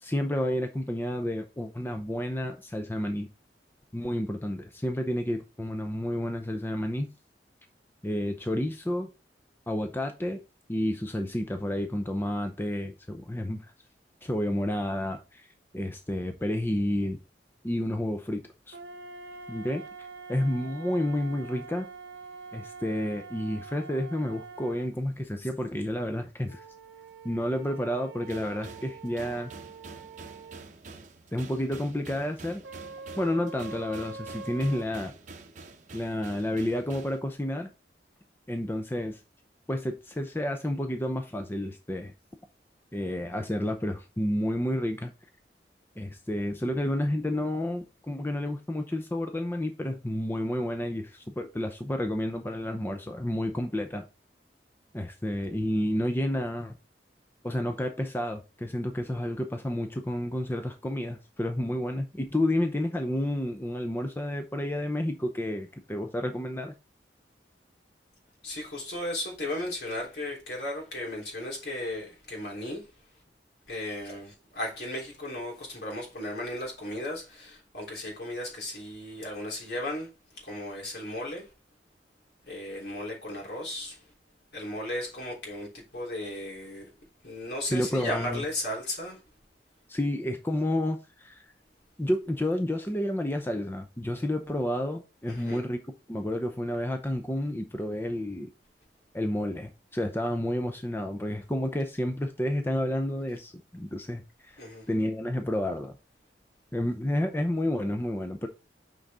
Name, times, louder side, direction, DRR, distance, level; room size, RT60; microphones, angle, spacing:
voice 1, 0.0-3.3 3.9-7.1 8.0-9.1 9.7-10.4 10.7-13.6 14.2-15.5 15.7-17.2 17.6-18.4 18.7-18.8 19.5-19.8 20.3-21.9 22.5-26.6 27.2-29.5 31.3-32.6 33.2-35.1 35.9-37.7 38.5-39.2 39.7-42.1 42.9-45.1 46.0-54.0 54.9-56.8 57.4-66.7 87.7-88.4 89.9-91.4 92.0-95.8 96.1-98.5 99.1-104.6 104.9-105.9 106.7-108.5, left 1 dB, 15° left, 0.6 m, -30 dB
sound 1, 18.7-24.9 26.5-30.7 32.6-34.8, right 4 dB, 85° right, 0.9 m, -44 dB
sound 2, 28.3-37.2, right 3 dB, 45° right, 0.8 m, -47 dB
voice 2, 68.4-72.9 73.7-80.1 80.3-81.5 82.5-84.1 84.5-86.9 87.2-89.2 95.3-95.6 104.6-104.9, left 1 dB, 65° left, 3.5 m, -35 dB
6.3 x 5.3 x 3.6 m
head